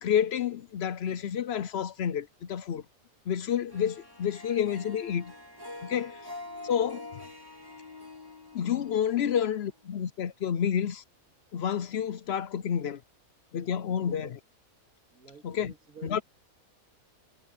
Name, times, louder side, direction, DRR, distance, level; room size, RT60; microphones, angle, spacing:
voice 1, 0.0-2.8 3.3-5.3 5.8-6.2 6.6-7.1 8.5-11.0 11.5-13.0 13.5-14.4 15.4-15.7 16.0-16.2, left 8 dB, 55° left, 0.8 m, -29 dB
Harp, 3.7-10.0, left 2 dB, 15° right, 3.2 m, -46 dB
voice 2, 14.0-14.3 15.1-16.2, right 6 dB, 70° right, 2.6 m, -50 dB
omnidirectional pair, 1.5 m